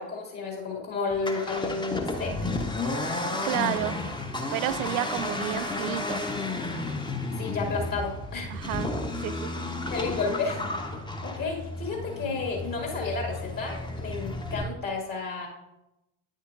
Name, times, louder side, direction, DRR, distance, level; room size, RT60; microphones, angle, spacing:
voice 1, 0.0-2.3 7.4-8.5 9.9-15.5, left 4 dB, 45° left, -1 dB, 1.9 m, -32 dB
Accelerating revving vroom, 1.1-14.6, left 2 dB, 10° left, 0.8 m, -32 dB
voice 2, 3.4-4.0 4.5-6.2 8.5-9.7, right 14 dB, 60° right, 15 dB, 0.5 m, -31 dB
9.5 x 6.5 x 2.5 m, 0.93 s
figure-of-eight pair, 55°, 48 cm